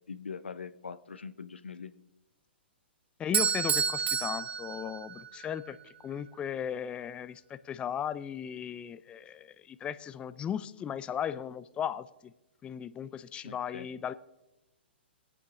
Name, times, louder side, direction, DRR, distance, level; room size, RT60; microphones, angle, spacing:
voice 1, 0.1-1.9 13.4-13.9, left 5 dB, 90° left, 13 dB, 0.6 m, -42 dB
voice 2, 3.2-12.3 12.6-14.1, left 9 dB, 15° left, 13 dB, 0.4 m, -36 dB
Bell / Doorbell, 3.3-5.4, right 7 dB, 70° right, 0.5 m, -30 dB
20.5 x 8.4 x 2.6 m, 0.99 s
hypercardioid pair, 125°, 6 cm